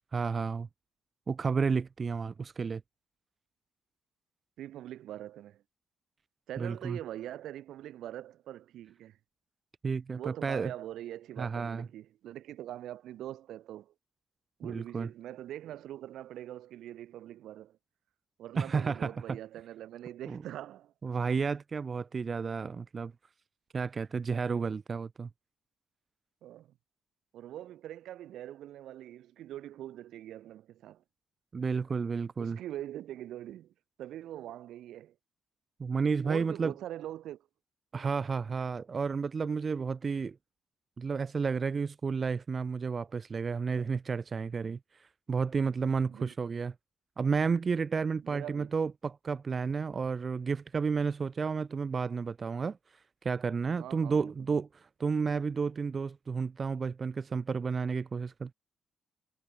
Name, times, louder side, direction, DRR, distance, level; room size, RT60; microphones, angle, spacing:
voice 1, 0.1-0.7 1.3-2.8 6.6-7.0 9.8-10.7 11.4-11.9 14.6-15.1 18.6-19.4 20.3-20.4 21.0-23.1 23.7-25.3 31.5-32.6 35.8-36.7 37.9-40.4 41.0-46.7 47.2-52.8 53.2-58.5, right 5 dB, 40° right, 0.3 m, -31 dB
voice 2, 4.6-5.6 6.5-9.2 10.1-13.9 14.6-17.8 18.4-21.2 26.4-26.7 27.3-31.0 32.4-33.7 34.0-35.1 36.2-37.5 46.1-46.3 48.2-48.7 53.8-54.6, right 12 dB, 80° right, 1.2 m, -43 dB
cardioid pair, 90°, 0 cm